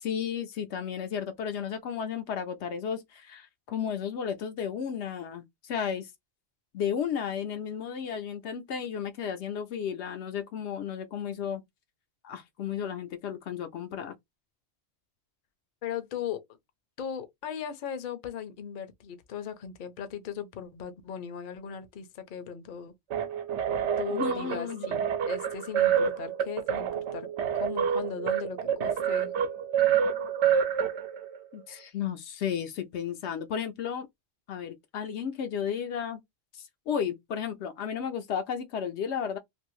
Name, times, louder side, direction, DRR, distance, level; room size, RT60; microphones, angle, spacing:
voice 1, 0.0-6.1 6.7-11.6 12.2-14.1 24.1-24.9 31.5-34.1 34.5-36.2 36.5-39.4, left 8 dB, 80° left, 0.9 m, -33 dB
voice 2, 15.8-16.4 17.0-22.9 24.0-25.0 25.3-27.3 27.5-29.3, left 8 dB, 55° left, 0.7 m, -38 dB
sound 1, 23.1-31.4, right 8 dB, 80° right, 0.9 m, -28 dB
2.6 x 2.6 x 3.0 m
omnidirectional pair, 1.1 m